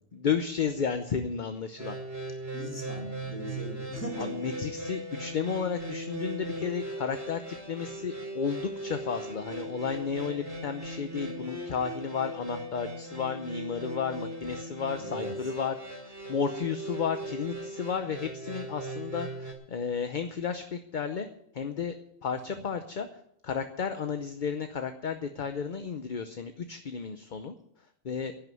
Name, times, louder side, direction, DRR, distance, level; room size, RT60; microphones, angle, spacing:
voice 1, 0.1-2.0 4.2-15.8 16.1-21.3 21.5-21.9 22.2-23.1 23.4-27.5 28.0-28.3, left 6 dB, 45° left, 8 dB, 0.8 m, -33 dB
sound 1, 1.8-19.5, right 1 dB, 10° right, 3.3 m, -39 dB
voice 2, 2.5-4.3 15.0-15.4 22.5-22.6, equal, 15° left, -1 dB, 3.7 m, -39 dB
11.0 x 9.3 x 9.3 m, 0.75 s
omnidirectional pair, 1.4 m